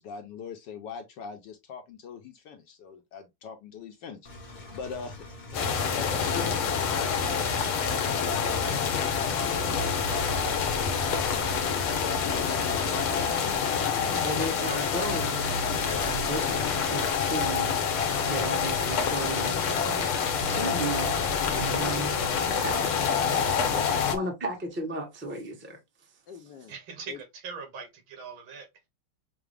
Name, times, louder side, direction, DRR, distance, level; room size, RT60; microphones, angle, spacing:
voice 1, 0.0-8.2 10.2-11.1 23.6-24.3 26.3-26.7 27.1-27.2, left 6 dB, 75° left, 1.0 m, -41 dB
Engine, 4.2-13.3, left 2 dB, 40° left, 0.7 m, -44 dB
sound 1, 5.5-24.2, left 6 dB, 90° left, 1.7 m, -27 dB
sound 2, 9.7-12.5 13.4-13.5 14.3-14.4 14.8-17.8 18.6-18.7 19.6-19.7 20.1-20.2 20.4-23.1 24.1-24.2, right 3 dB, 50° right, 1.2 m, -41 dB
voice 2, 14.2-15.4 16.0-17.8 18.3-20.2 20.4-21.2 21.5-22.2 22.6-23.2 23.7-25.8, right 2 dB, 10° right, 0.5 m, -35 dB
voice 3, 26.7-28.9, right 5 dB, 75° right, 2.1 m, -42 dB
5.8 x 2.0 x 3.2 m
omnidirectional pair, 2.3 m